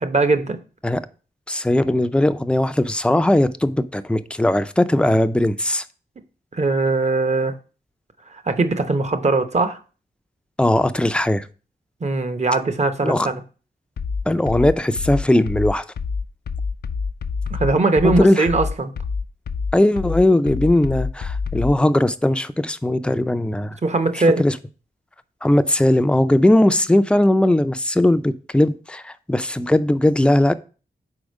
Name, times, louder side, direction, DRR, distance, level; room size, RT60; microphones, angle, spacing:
voice 1, 0.0-0.6 6.6-7.5 8.5-9.8 12.0-13.4 17.5-18.9 23.8-24.4, right 3 dB, 40° right, 0.8 m, -20 dB
voice 2, 1.5-5.8 10.6-11.5 13.0-13.3 14.3-15.8 18.0-18.5 19.7-23.8 24.1-24.6 25.4-30.5, left 1 dB, 5° left, 0.4 m, -18 dB
sound 1, 14.0-21.8, left 5 dB, 60° left, 0.4 m, -26 dB
4.9 x 4.3 x 5.3 m
cardioid pair, 60°, 18 cm